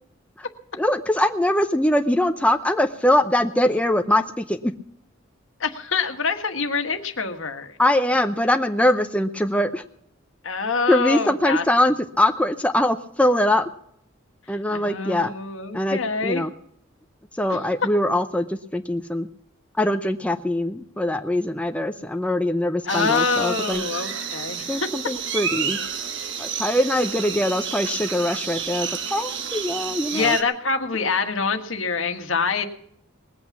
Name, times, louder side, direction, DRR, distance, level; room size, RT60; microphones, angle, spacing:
voice 1, 0.8-4.7 7.8-9.8 10.9-13.7 14.5-15.3 15.7-16.5 17.4-19.3 19.8-23.8 24.7-25.8 26.4-30.4, left 1 dB, 5° left, 6 dB, 0.7 m, -22 dB
voice 2, 5.6-7.7 10.4-11.6 14.7-16.5 22.9-24.8 30.1-32.6, left 4 dB, 70° left, 7 dB, 1.5 m, -25 dB
sound 1, 22.9-30.4, right 7 dB, 65° right, 1.3 m, -30 dB
20.0 x 8.5 x 7.1 m, 0.68 s
head